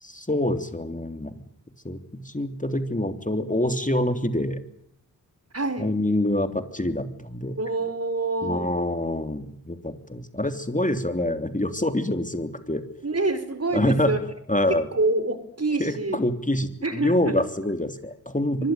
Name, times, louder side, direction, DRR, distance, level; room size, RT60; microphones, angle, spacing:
voice 1, 0.0-1.4 1.8-4.6 5.8-7.5 8.4-12.8 13.7-14.2 14.5-14.9 15.8-18.7, left 1 dB, 20° left, 8 dB, 3.4 m, -26 dB
voice 2, 5.5-6.0 7.6-8.7 13.0-14.2 14.9-16.2 16.8-17.3 18.6-18.7, right 3 dB, 40° right, 11 dB, 5.1 m, -26 dB
24.5 x 20.5 x 9.2 m, 0.72 s
cardioid pair, 40°, 37 cm